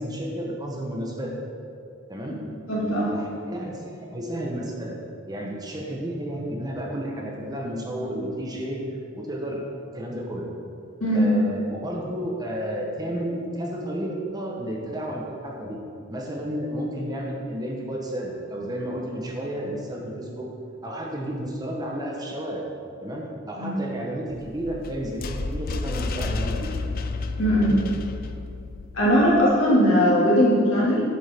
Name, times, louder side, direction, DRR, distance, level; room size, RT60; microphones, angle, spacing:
voice 1, 0.0-1.3 2.1-2.4 2.8-5.0 5.3-9.6 9.9-10.5 11.1-15.8 16.1-20.5 20.8-22.6 23.0-26.7 27.4-27.8, equal, 20° right, -1 dB, 0.9 m, -32 dB
voice 2, 2.7-3.1 11.0-11.3 23.6-23.7 27.4-27.7 28.9-31.0, equal, 80° left, -6 dB, 2.0 m, -19 dB
sound 1, 24.3-29.4, left 3 dB, 45° left, 0.4 m, -31 dB
8.8 x 7.1 x 3.5 m, 2.5 s
head